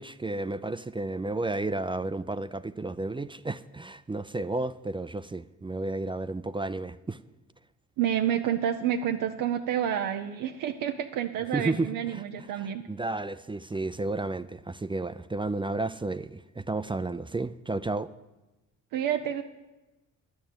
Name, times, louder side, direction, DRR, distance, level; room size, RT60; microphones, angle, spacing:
voice 1, 0.0-7.2 11.5-12.2 12.6-18.1, right 2 dB, 15° right, 0.4 m, -32 dB
voice 2, 8.0-12.9 18.9-19.4, right 10 dB, 85° right, 0.6 m, -29 dB
11.0 x 7.0 x 9.3 m
supercardioid pair, 60°, 32 cm